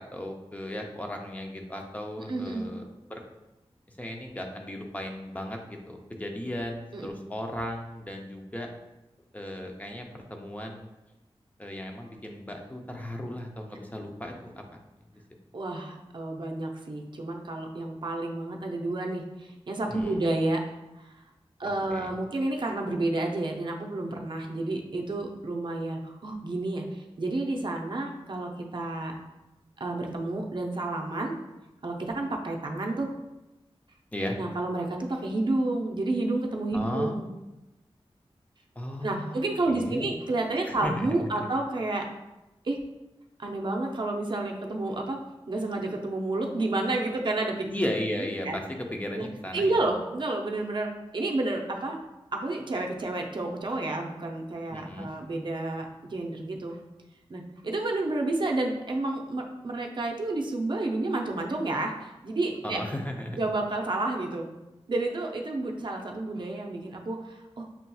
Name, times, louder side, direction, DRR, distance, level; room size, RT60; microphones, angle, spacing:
voice 1, 0.1-3.2 4.0-8.7 9.3-10.9 11.6-14.6 15.1-15.2 19.9-20.2 21.9-22.1 34.1-34.4 36.7-37.2 38.8-40.2 40.6-41.1 41.3-41.5 47.7-49.8 54.7-55.1 62.6-63.4, left 1 dB, 15° left, 2 dB, 0.5 m, -35 dB
voice 2, 2.3-2.7 6.9-7.1 15.5-20.6 21.0-21.1 21.6-29.1 29.8-31.3 31.8-33.1 34.4-37.3 39.0-42.1 42.6-42.8 43.4-45.2 45.5-47.7 48.4-48.6 49.2-49.3 49.5-52.0 52.3-56.8 57.3-62.8 63.3-64.5 64.9-67.7, right 2 dB, 50° right, 1 dB, 0.5 m, -30 dB
5.6 x 2.8 x 2.3 m, 0.99 s
wide cardioid pair, 100°, 10 cm